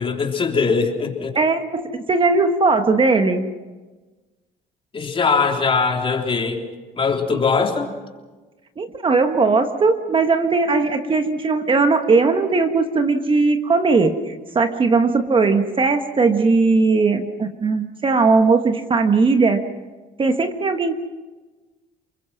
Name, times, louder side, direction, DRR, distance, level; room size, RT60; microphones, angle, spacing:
voice 1, 0.0-1.4 4.9-6.6 7.0-7.9, left 5 dB, 30° left, 2 dB, 3.5 m, -21 dB
voice 2, 1.3-3.4 8.8-19.6 20.2-20.9, right 4 dB, 30° right, 7 dB, 1.5 m, -18 dB
30.0 x 21.5 x 6.0 m, 1.3 s
cardioid pair, 110°, 17 cm